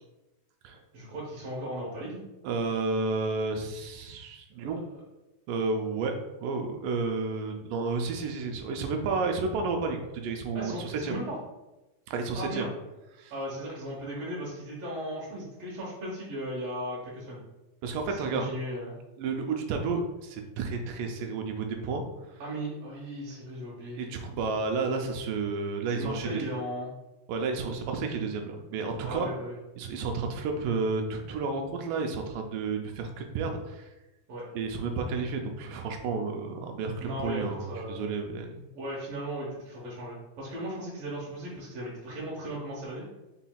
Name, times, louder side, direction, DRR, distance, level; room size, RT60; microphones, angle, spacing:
voice 1, 0.9-2.2 4.6-4.8 10.5-11.4 12.3-12.8 13.3-17.4 18.1-19.0 22.4-24.0 25.9-26.9 29.0-29.5 34.3-34.5 37.0-38.0 38.7-43.1, equal, 65° right, -5 dB, 1.6 m, -36 dB
voice 2, 2.4-4.8 5.5-11.1 12.1-12.7 13.1-13.3 17.8-18.5 19.2-22.0 22.3-22.4 23.8-26.4 27.3-29.3 29.8-33.9 34.6-38.7, right 4 dB, 80° right, 4 dB, 2.2 m, -31 dB
5.7 x 3.9 x 2.2 m, 1.0 s
omnidirectional pair, 3.9 m